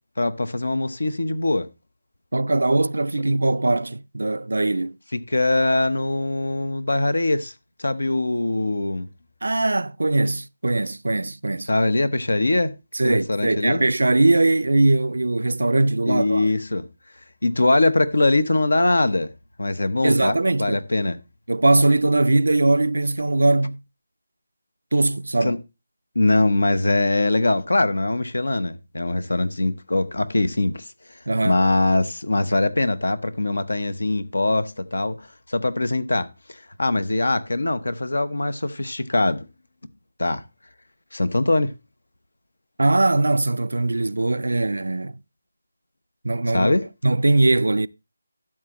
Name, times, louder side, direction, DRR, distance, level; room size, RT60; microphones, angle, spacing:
voice 1, 0.2-1.7 5.1-7.5 7.8-9.1 11.7-12.7 13.0-13.8 16.1-16.9 17.4-19.3 19.6-21.2 25.4-25.6 26.1-30.9 31.4-39.4 40.2-40.4 41.1-41.7 46.5-46.9, left 2 dB, 85° left, 1.0 m, -22 dB
voice 2, 2.3-5.0 9.4-11.7 12.9-16.5 20.0-20.8 21.5-23.8 24.9-25.6 31.3-31.6 42.8-45.2 46.2-46.7 47.0-47.9, right 2 dB, 80° right, 0.4 m, -20 dB
12.5 x 7.4 x 3.0 m
figure-of-eight pair, 165°, 0 cm